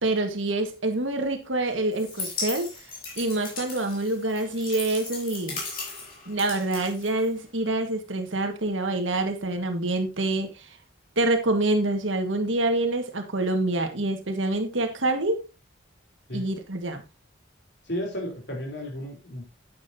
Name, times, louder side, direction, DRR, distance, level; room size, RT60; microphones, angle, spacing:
voice 1, 0.0-2.7 3.2-5.6 6.3-10.5 11.2-15.4 16.3-17.0, right 2 dB, 85° right, 1.7 m, -26 dB
sound 1, 1.9-7.6, left 3 dB, 45° left, 4.0 m, -37 dB
voice 2, 17.9-19.4, equal, 65° left, 3.7 m, -33 dB
9.1 x 8.9 x 2.8 m
head